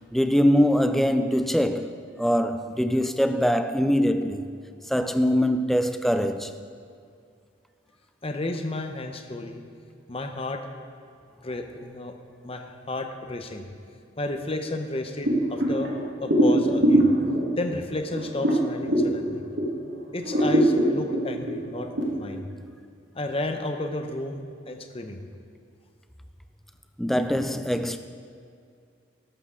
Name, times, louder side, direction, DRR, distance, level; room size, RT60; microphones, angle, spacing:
voice 1, 0.1-4.5 4.9-6.6 27.0-28.0, equal, ahead, 0.4 m, -23 dB
voice 2, 8.2-9.6 10.1-10.6 11.4-12.1 12.4-13.6 14.2-15.9 16.2-17.1 17.6-19.5 20.1-22.4 23.1-25.2, left 2 dB, 30° left, 0.9 m, -32 dB
sound 1, 15.2-19.8 20.2-22.0, right 1 dB, 70° right, 2.0 m, -23 dB
13.0 x 12.5 x 3.8 m
head